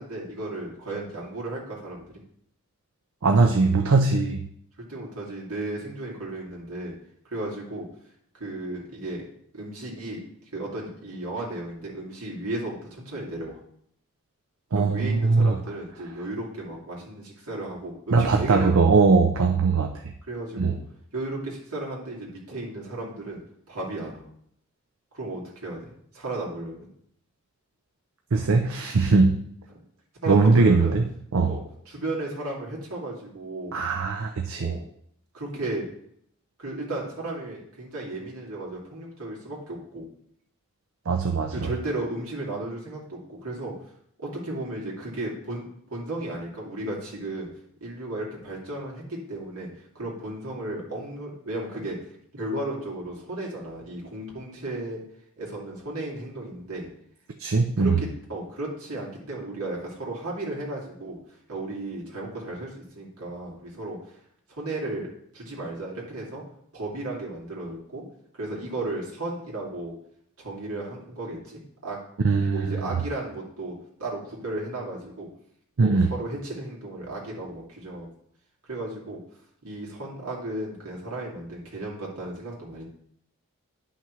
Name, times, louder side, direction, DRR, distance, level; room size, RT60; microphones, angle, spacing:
voice 1, 0.0-2.1 4.8-6.9 7.2-7.9 8.3-9.2 9.5-10.2 10.5-13.6 14.7-18.8 20.3-20.8 21.1-23.4 23.7-24.3 25.1-26.9 30.2-31.0 31.5-33.8 34.5-34.8 35.3-35.9 36.6-40.1 41.5-43.7 44.2-47.5 47.8-49.7 49.9-52.0 52.3-55.0 55.4-56.9 57.8-61.2 61.5-64.0 64.5-66.4 66.7-68.0 68.3-69.9 70.4-72.0 72.3-75.3 75.8-78.1 78.7-79.2 79.6-82.8, right 2 dB, 85° right, -3 dB, 2.4 m, -34 dB
voice 2, 3.2-4.5 14.7-15.6 18.1-20.1 20.6-20.7 28.3-29.4 30.3-31.5 33.7-34.7 41.1-41.7 57.4-58.0 72.2-72.9 75.8-76.1, right 4 dB, 70° right, 3 dB, 0.6 m, -21 dB
10.5 x 5.8 x 3.1 m, 0.69 s
head